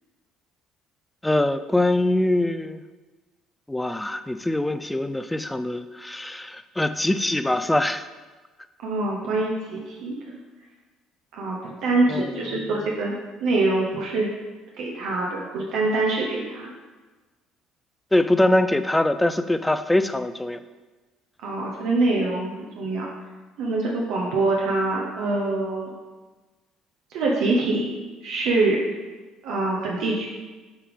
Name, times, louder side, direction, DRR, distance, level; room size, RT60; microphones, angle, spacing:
voice 1, 1.2-2.8 3.7-8.1 12.1-12.3 18.1-20.6, left 1 dB, 10° left, 10 dB, 0.4 m, -23 dB
voice 2, 8.8-10.4 11.3-13.1 13.4-14.3 14.8-16.7 21.4-23.1 23.6-25.9 27.1-27.9 28.2-28.8 29.4-30.3, right 2 dB, 75° right, -2 dB, 1.0 m, -24 dB
7.5 x 3.5 x 5.0 m, 1.3 s
supercardioid pair, 80°, 0 cm